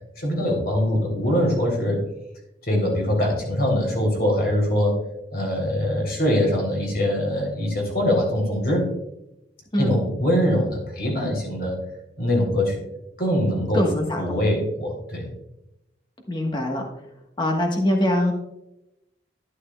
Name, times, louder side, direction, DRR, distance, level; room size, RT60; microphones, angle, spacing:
voice 1, 0.2-2.0 2.7-5.0 5.3-8.8 9.8-11.7 12.2-12.9 13.2-13.9 14.2-15.3, left 1 dB, 60° left, 0 dB, 3.6 m, -23 dB
voice 2, 13.7-14.5 16.3-16.8 17.4-18.3, left 1 dB, 25° left, 2 dB, 1.3 m, -23 dB
12.0 x 9.4 x 2.3 m, 0.88 s
head